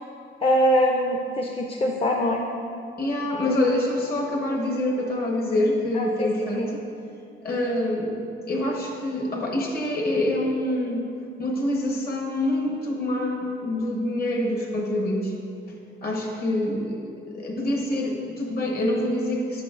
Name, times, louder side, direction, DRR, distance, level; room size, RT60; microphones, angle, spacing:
voice 1, 0.4-2.4 5.9-6.3 6.6-6.7, equal, 30° left, 0 dB, 0.5 m, -23 dB
voice 2, 3.0-6.8 7.4-8.2 8.5-11.1 11.4-15.3 16.0-19.6, left 1 dB, 50° left, 0 dB, 1.2 m, -26 dB
8.7 x 6.0 x 2.5 m, 2.5 s
cardioid pair, 90°, 20 cm